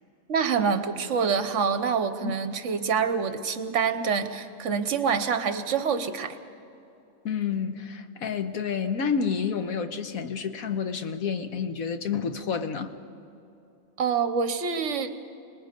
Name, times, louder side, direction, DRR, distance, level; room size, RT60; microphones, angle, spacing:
voice 1, 0.3-6.4 14.0-15.1, right 6 dB, 60° right, 10 dB, 1.2 m, -26 dB
voice 2, 7.2-12.9, left 6 dB, 90° left, 8 dB, 1.5 m, -29 dB
26.0 x 20.0 x 5.2 m, 2.7 s
omnidirectional pair, 1.4 m